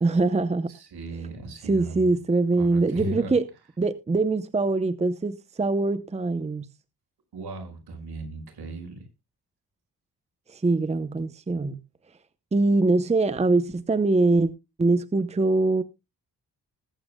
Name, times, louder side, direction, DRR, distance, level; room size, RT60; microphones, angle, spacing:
voice 1, 0.0-0.7 1.7-3.4 3.8-6.7 10.5-11.8 12.5-14.5 14.8-15.8, right 3 dB, 15° right, 0.7 m, -23 dB
voice 2, 0.7-2.1 2.6-3.4 7.3-9.0, right 2 dB, 70° right, 5.3 m, -37 dB
20.5 x 8.7 x 2.2 m
wide cardioid pair, 120°, 40 cm